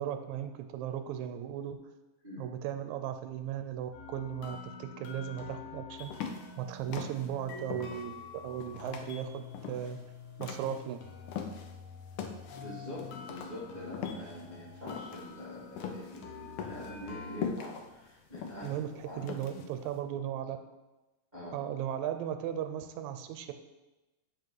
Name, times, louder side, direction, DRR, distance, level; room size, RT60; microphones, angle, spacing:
voice 1, 0.0-1.8 2.4-6.1 6.6-10.0 10.4-11.0 18.6-20.6 21.5-23.5, right 10 dB, 85° right, 8 dB, 2.0 m, -37 dB
sound 1, 3.9-17.4, left 5 dB, 70° left, 2.0 m, -47 dB
sound 2, 6.1-11.8 12.2-19.9, left 6 dB, 85° left, 1.2 m, -41 dB
voice 2, 12.5-19.2 21.3-21.5, left 1 dB, 20° right, -8 dB, 1.6 m, -44 dB
7.6 x 4.9 x 4.6 m, 1.0 s
omnidirectional pair, 3.3 m